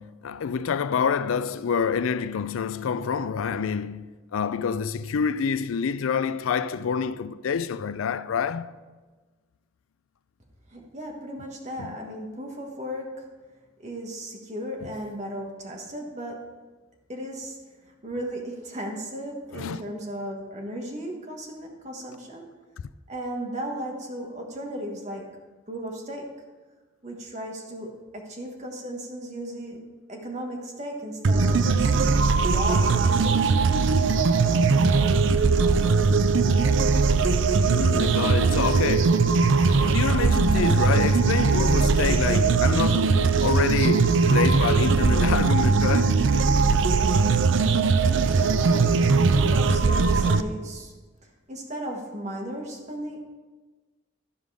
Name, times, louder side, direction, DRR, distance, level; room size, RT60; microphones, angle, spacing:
voice 1, 0.0-8.7 11.8-12.0 19.5-19.8 37.6-46.2, left 6 dB, 85° left, 0.4 m, -27 dB
voice 2, 10.7-13.3 13.8-16.6 17.1-17.6 18.0-22.4 23.1-26.3 27.0-31.9 32.4-33.7 48.1-51.0 51.2-53.2, right 1 dB, 35° right, 1.4 m, -36 dB
sound 1, 31.2-50.4, right 4 dB, 70° right, 0.4 m, -20 dB
13.0 x 5.3 x 4.8 m
head